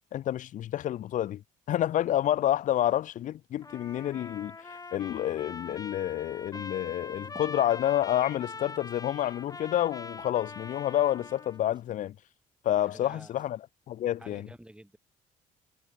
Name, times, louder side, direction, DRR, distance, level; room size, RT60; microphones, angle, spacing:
voice 1, 0.1-1.4 1.7-12.2 12.6-13.6 13.9-14.5, left 12 dB, 50° left, 0.5 m, -29 dB
sound 1, 2.5-3.2 3.5-3.6 3.8-6.1 6.5-7.6 8.2-9.2 9.4-10.9 11.2-12.4 12.7-13.6, right 4 dB, 25° right, 6.2 m, -59 dB
Trumpet, 3.6-11.6, left 4 dB, 20° left, 1.3 m, -43 dB
voice 2, 12.6-13.3 14.2-15.0, right 1 dB, 5° right, 4.3 m, -50 dB
supercardioid pair, 70°, 17 cm